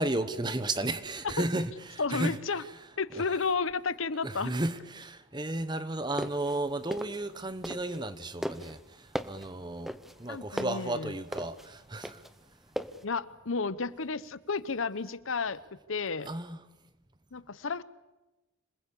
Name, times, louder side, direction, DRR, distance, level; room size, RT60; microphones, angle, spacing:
voice 1, 0.0-2.4 4.2-12.2 16.3-16.6, right 2 dB, 20° right, 1.1 m, -33 dB
voice 2, 2.0-2.6 3.0-4.5 10.3-11.1 13.0-15.6 15.9-16.3 17.3-17.8, left 4 dB, 70° left, 0.9 m, -32 dB
sound 1, 6.0-8.1 8.4-13.0, equal, ahead, 0.8 m, -38 dB
26.5 x 20.0 x 8.5 m
head